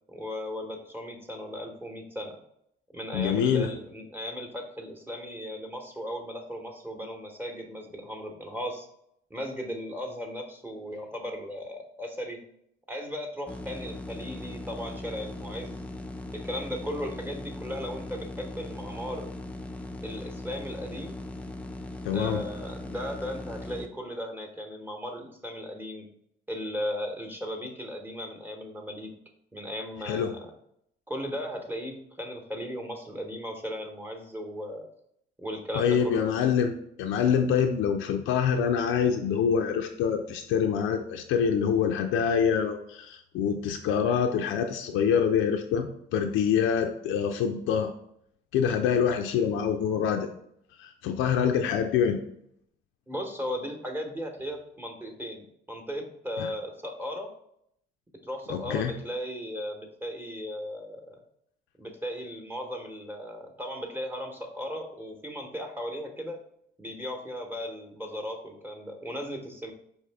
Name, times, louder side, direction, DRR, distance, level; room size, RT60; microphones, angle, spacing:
voice 1, 0.1-2.4 2.9-8.9 9.3-12.4 12.9-15.8 16.3-19.3 20.0-21.3 22.1-26.1 26.5-29.1 29.5-30.5 31.1-34.9 35.4-36.3 53.1-57.3 58.2-61.2 61.8-66.4 66.8-69.7, equal, 10° right, 2 dB, 0.9 m, -36 dB
voice 2, 3.1-3.7 22.0-22.4 30.0-30.3 35.7-36.7 37.0-47.9 48.5-50.3 50.8-52.2 56.4-56.5 58.5-59.0, left 7 dB, 80° left, 5 dB, 0.4 m, -25 dB
sound 1, 13.5-23.9, left 2 dB, 5° left, 0.4 m, -39 dB
4.8 x 2.7 x 3.4 m, 0.72 s
cardioid pair, 85°, 20 cm